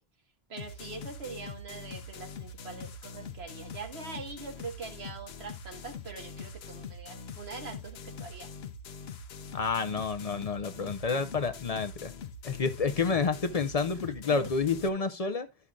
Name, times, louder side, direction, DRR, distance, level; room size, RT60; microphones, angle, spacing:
voice 1, 0.5-8.5, right 4 dB, 80° right, 1.7 m, -43 dB
sound 1, 0.6-14.9, left 5 dB, 80° left, 1.0 m, -43 dB
voice 2, 9.5-12.1 12.4-15.5, left 4 dB, 45° left, 0.5 m, -29 dB
13.0 x 5.7 x 2.3 m
omnidirectional pair, 1.1 m